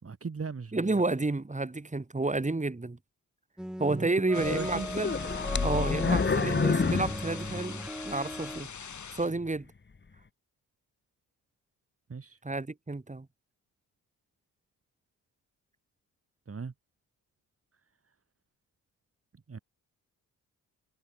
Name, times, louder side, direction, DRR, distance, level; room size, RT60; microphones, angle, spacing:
voice 1, 0.0-0.9 3.9-4.9 12.1-12.4 16.5-16.7 19.5-19.6, right 5 dB, 40° right, 4.9 m, -38 dB
voice 2, 0.7-3.0 3.8-5.1 5.6-8.7 9.1-9.7 12.4-13.3, right 2 dB, 20° right, 3.9 m, -30 dB
sound 1, 3.6-8.6, equal, ahead, 1.9 m, -39 dB
sound 2, 4.3-9.3, left 6 dB, 55° left, 5.8 m, -43 dB
sound 3, 4.4-8.1 8.6-8.7 9.3-9.4, left 4 dB, 30° left, 2.1 m, -29 dB
supercardioid pair, 65°, 36 cm